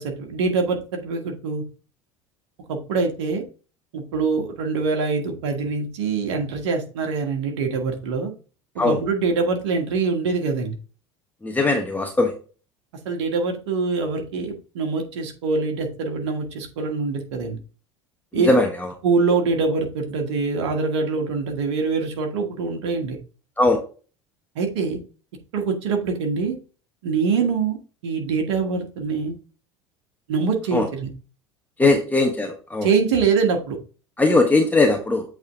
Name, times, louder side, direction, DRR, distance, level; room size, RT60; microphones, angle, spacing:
voice 1, 0.0-1.6 2.7-3.4 3.9-8.3 8.7-10.8 13.0-17.6 18.3-18.6 19.0-23.2 24.5-25.0 25.5-26.6 27.0-27.8 28.0-29.3 30.3-31.1 31.8-31.9 32.8-33.8, right 4 dB, 65° right, 3 dB, 1.6 m, -24 dB
voice 2, 11.4-12.3 18.3-18.9 23.6-23.8 30.7-30.9 31.8-32.9 34.2-35.2, left 2 dB, 10° left, 2 dB, 1.1 m, -19 dB
8.1 x 3.7 x 3.6 m, 0.36 s
figure-of-eight pair, 70°, 15 cm